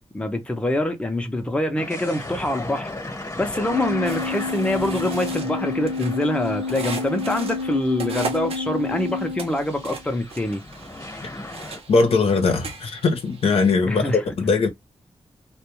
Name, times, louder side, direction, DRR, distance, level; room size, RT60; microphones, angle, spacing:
voice 1, 0.1-2.9 3.4-10.6 13.8-14.3, left 1 dB, 10° left, 0.6 m, -25 dB
sound 1, 1.8-8.3 8.7-8.8 9.6-11.8, left 2 dB, 30° left, 1.0 m, -36 dB
Organ, 3.5-10.1, left 3 dB, 50° right, 0.7 m, -30 dB
sound 2, 4.0-13.7, right 4 dB, 80° right, 0.6 m, -38 dB
voice 2, 11.9-14.7, left 4 dB, 80° left, 0.7 m, -20 dB
2.2 x 2.2 x 2.9 m
wide cardioid pair, 100°, 10 cm